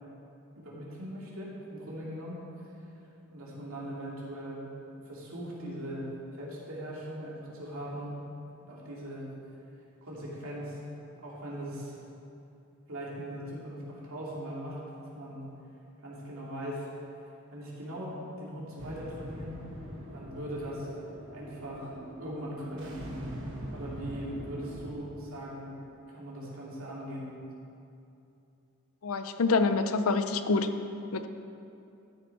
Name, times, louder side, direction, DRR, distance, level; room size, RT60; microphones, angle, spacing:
voice 1, 0.6-2.4 3.3-4.7 5.0-6.1 6.3-8.1 8.6-9.2 10.0-10.8 11.2-12.0 12.9-14.8 15.1-15.4 16.0-16.8 17.5-19.6 20.1-20.9 21.3-21.9 22.2-23.0 23.7-25.8 26.1-27.3, equal, 75° right, -5 dB, 2.5 m, -40 dB
sound 1, 18.8-24.9, right 1 dB, 60° right, 1.5 m, -42 dB
voice 2, 29.0-30.7 31.1-31.3, left 4 dB, 80° left, 9 dB, 0.6 m, -26 dB
12.5 x 7.0 x 4.7 m, 2.7 s
head